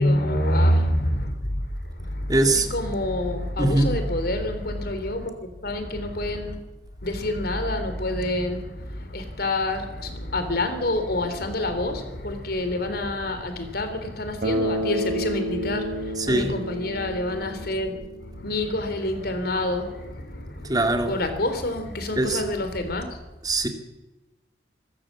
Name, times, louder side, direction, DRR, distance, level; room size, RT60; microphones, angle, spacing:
voice 1, 0.0-6.6 7.0-23.2, left 1 dB, 60° left, 3.3 m, -27 dB
voice 2, 2.3-2.7 3.6-3.9 16.3-16.5 20.6-21.1 22.2-22.4 23.4-23.7, right 2 dB, 20° right, 2.3 m, -21 dB
Bass guitar, 14.4-18.4, equal, 50° right, 3.7 m, -30 dB
25.5 x 14.0 x 7.4 m
head